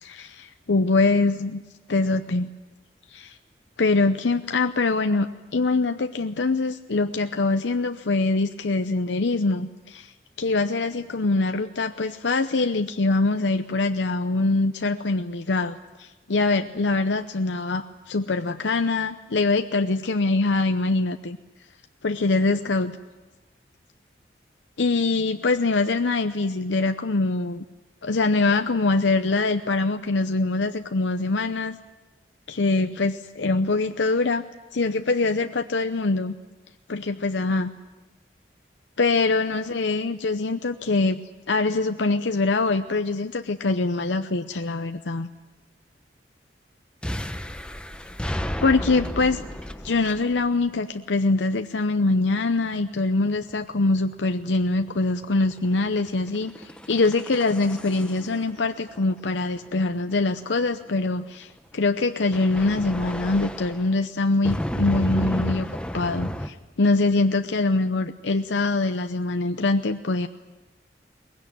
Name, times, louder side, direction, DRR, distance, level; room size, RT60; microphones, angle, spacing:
voice 1, 0.0-1.6 1.9-2.5 3.1-3.4 3.8-10.1 10.4-21.4 22.0-23.0 24.8-27.6 28.0-31.8 32.5-34.4 34.7-36.4 36.9-37.7 39.0-41.2 41.5-45.3 48.6-49.4 49.8-65.7 65.9-70.3, left 3 dB, 85° left, 8 dB, 0.7 m, -23 dB
sound 1, 47.0-50.7 52.5-61.0 62.3-64.0 64.4-66.5, equal, 5° left, 0.8 m, -32 dB
22.5 x 21.0 x 9.3 m, 1.1 s
head